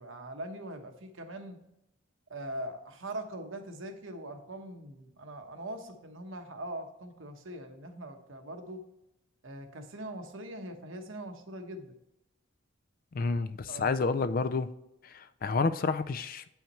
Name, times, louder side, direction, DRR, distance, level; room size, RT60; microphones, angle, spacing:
voice 1, 0.0-1.6 2.3-8.8 9.4-11.9 13.7-13.9, right 1 dB, 70° right, 5 dB, 1.0 m, -42 dB
voice 2, 13.1-14.7 15.0-16.5, left 4 dB, 45° left, 13 dB, 0.4 m, -30 dB
8.6 x 5.7 x 3.0 m, 0.86 s
head